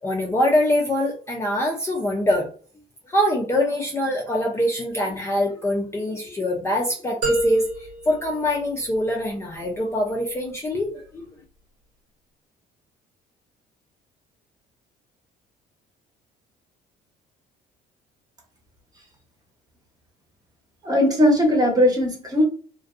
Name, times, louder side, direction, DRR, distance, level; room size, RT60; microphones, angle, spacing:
voice 1, 0.0-2.5 3.1-11.3, left 1 dB, 15° left, -1 dB, 0.4 m, -24 dB
sound 1, 7.2-9.3, right 1 dB, 75° right, 1.1 m, -29 dB
voice 2, 20.8-22.4, left 1 dB, 20° right, 0 dB, 0.9 m, -18 dB
2.5 x 2.1 x 2.4 m, 0.41 s
cardioid pair, 110°, 17 cm